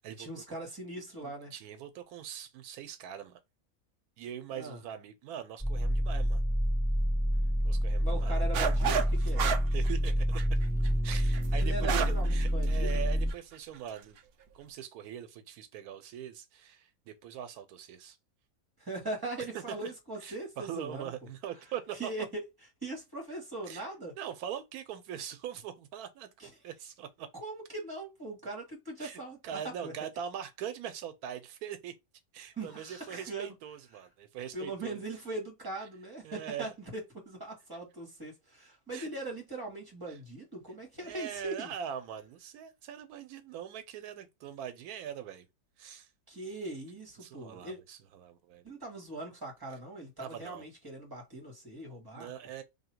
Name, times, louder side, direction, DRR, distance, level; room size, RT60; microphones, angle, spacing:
voice 1, 0.2-1.5 4.5-4.8 8.0-9.5 11.5-13.0 18.8-21.1 22.0-22.4 22.8-24.1 26.4-26.5 27.3-29.9 32.6-33.5 34.5-41.7 46.3-47.8 48.6-52.3, right 2 dB, 15° right, 1.5 m, -40 dB
voice 2, 1.2-3.4 4.2-6.4 7.6-8.4 9.2-9.3 9.7-10.4 11.0-14.2 14.5-18.2 19.5-19.9 20.2-22.1 23.7-23.8 24.2-27.3 29.0-31.9 32.3-35.0 36.2-36.8 38.9-39.1 40.1-40.2 41.0-45.5 45.8-46.1 47.2-48.7 50.2-50.7 52.1-52.6, right 9 dB, 90° right, 1.1 m, -42 dB
sound 1, 5.6-13.3, equal, 10° left, 1.2 m, -28 dB
sound 2, 8.5-9.1 9.4-12.3 12.6-12.7 13.3-13.6, right 7 dB, 70° right, 0.5 m, -31 dB
2.8 x 2.6 x 4.4 m
omnidirectional pair, 1.6 m